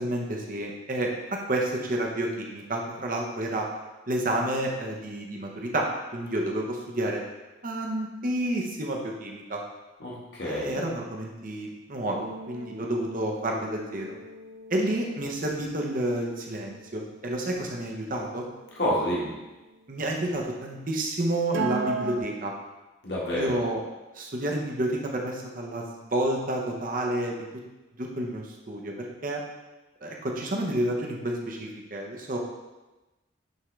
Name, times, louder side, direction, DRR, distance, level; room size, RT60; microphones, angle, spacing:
voice 1, 0.0-3.7 4.1-7.2 7.6-9.6 10.4-14.1 14.7-18.4 19.9-22.5 23.3-23.8 24.1-27.6 28.0-29.4 30.0-32.4, right 1 dB, 45° right, 0 dB, 0.9 m, -30 dB
voice 2, 10.0-10.8 18.7-19.3 23.0-23.6, equal, 60° left, -5 dB, 1.6 m, -28 dB
sound 1, 12.1-18.4 21.5-22.2, right 4 dB, 70° right, 0.5 m, -37 dB
9.2 x 3.7 x 3.3 m, 1.1 s
head